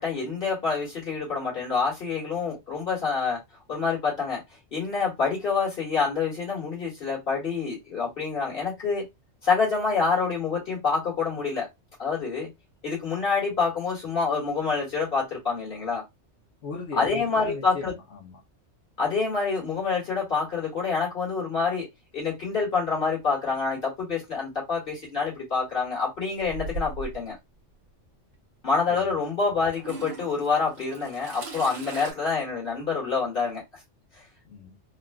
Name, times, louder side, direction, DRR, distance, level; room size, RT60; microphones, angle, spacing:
voice 1, 0.0-3.4 3.7-4.4 4.7-9.1 9.4-11.7 12.0-12.5 12.8-16.0 16.9-17.9 19.0-21.9 22.1-27.4 28.6-33.6, left 5 dB, 45° left, 2.0 m, -27 dB
voice 2, 16.6-18.4 28.9-29.1 34.5-34.8, left 4 dB, 70° left, 1.1 m, -38 dB
Toilet flush / Trickle dribble, 26.4-27.3 28.3-28.4 29.7-32.1, right 3 dB, 60° right, 0.9 m, -38 dB
3.7 x 2.4 x 2.2 m
omnidirectional pair, 1.3 m